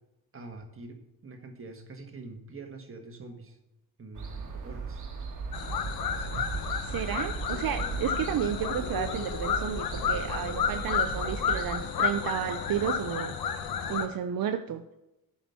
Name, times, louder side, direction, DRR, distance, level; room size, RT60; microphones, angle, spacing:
voice 1, 0.3-3.6 4.0-5.1, right 3 dB, 40° right, 3 dB, 1.5 m, -45 dB
sound 1, 4.2-11.9, right 4 dB, 60° right, 1.6 m, -37 dB
sound 2, 5.5-14.1, left 7 dB, 85° left, 0.9 m, -31 dB
voice 2, 6.8-13.3 13.9-14.8, right 9 dB, 75° right, 8 dB, 0.6 m, -32 dB
8.6 x 5.8 x 5.7 m, 0.92 s
wide cardioid pair, 115°, 35 cm